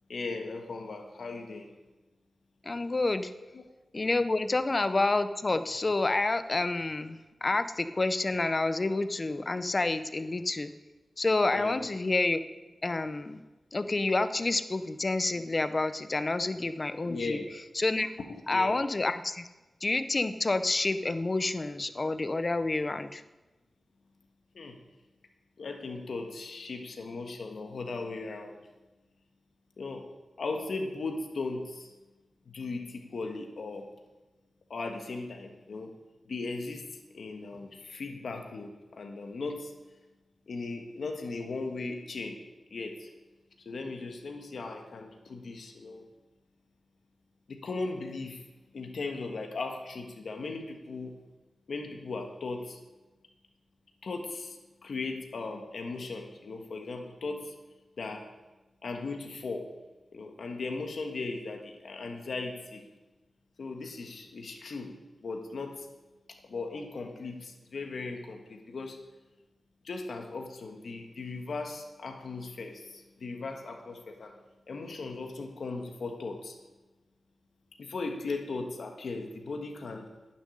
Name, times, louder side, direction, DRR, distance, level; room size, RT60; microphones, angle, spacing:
voice 1, 0.1-1.7 4.4-4.6 11.5-11.8 17.0-17.5 18.3-18.7 24.5-24.8 25.6-28.7 29.8-30.0 30.4-31.9 32.5-33.9 34.7-35.9 36.3-39.7 40.5-42.4 42.7-43.1 43.6-46.0 47.5-48.4 48.7-51.2 51.7-52.8 54.0-54.6 54.8-57.5 58.0-58.3 58.8-59.7 60.1-62.8 63.6-64.9 65.2-65.9 66.3-69.0 69.8-74.3 74.7-76.6 77.8-80.1, left 3 dB, 70° left, 3 dB, 1.5 m, -37 dB
voice 2, 2.6-3.3 3.9-10.7 11.2-12.4 12.8-13.4 13.7-17.4 17.7-18.1 18.5-19.5 19.8-23.2, left 2 dB, 30° left, 11 dB, 0.7 m, -28 dB
11.5 x 7.5 x 9.9 m, 1.1 s
wide cardioid pair, 135°, 0 cm